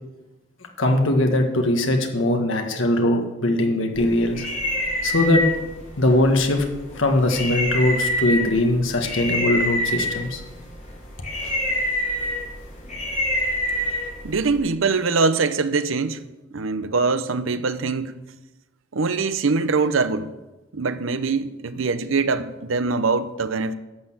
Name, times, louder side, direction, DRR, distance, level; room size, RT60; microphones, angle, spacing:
voice 1, 0.8-4.5 5.0-5.4 6.0-6.6 6.9-10.4, left 1 dB, 75° left, 1.5 m, -20 dB
sound 1, 3.9-14.6, left 1 dB, 35° left, 3.2 m, -27 dB
voice 2, 14.2-16.2 16.5-18.2 18.9-20.3 20.7-23.7, right 4 dB, 80° right, 0.7 m, -23 dB
11.5 x 6.5 x 7.6 m
head